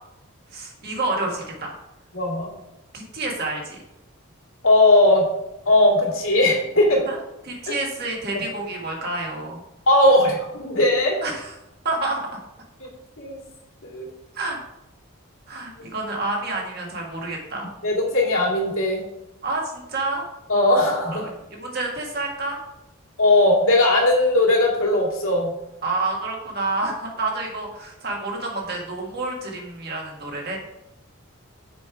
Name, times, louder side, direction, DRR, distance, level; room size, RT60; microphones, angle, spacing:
voice 1, 0.5-1.7 2.9-3.8 7.1-7.2 7.4-9.6 11.2-11.5 11.8-12.4 14.3-14.6 15.5-17.7 19.4-20.3 21.1-22.6 25.8-30.6, right 2 dB, 45° right, -1 dB, 1.8 m, -29 dB
voice 2, 2.1-2.5 4.6-5.2 5.7-7.0 9.9-11.2 12.8-12.9 13.2-13.4 13.8-14.1 17.8-19.0 20.5-21.3 23.2-25.5, left 1 dB, 75° left, -2 dB, 2.5 m, -18 dB
6.9 x 5.5 x 4.7 m, 0.92 s
head